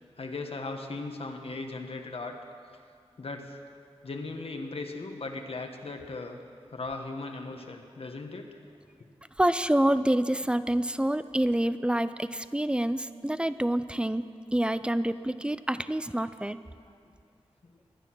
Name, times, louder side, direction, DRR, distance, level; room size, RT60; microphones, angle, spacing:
voice 1, 0.2-2.4 3.2-3.6 4.0-6.4 6.7-8.5, left 3 dB, 60° left, 4 dB, 1.5 m, -37 dB
voice 2, 9.4-14.2 14.5-16.6, right 1 dB, 10° right, 13 dB, 0.5 m, -27 dB
22.5 x 9.7 x 6.2 m, 2.3 s
wide cardioid pair, 80°, 11 cm